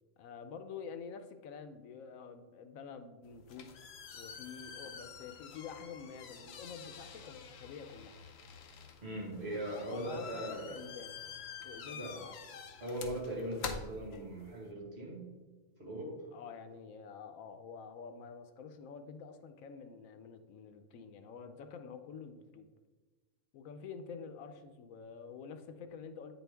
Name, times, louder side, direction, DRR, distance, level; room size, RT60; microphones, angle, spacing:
voice 1, 0.2-3.7 4.1-8.1 9.9-11.2 11.6-12.5 16.3-22.7 23.5-26.3, left 6 dB, 90° left, 9 dB, 1.0 m, -48 dB
sound 1, 3.2-14.7, left 6 dB, 60° left, 0.8 m, -48 dB
voice 2, 9.0-10.9 11.9-12.2 12.8-15.3 15.8-16.2, right 1 dB, 55° right, -2 dB, 1.9 m, -40 dB
8.8 x 4.4 x 3.4 m, 1.3 s
omnidirectional pair, 1.4 m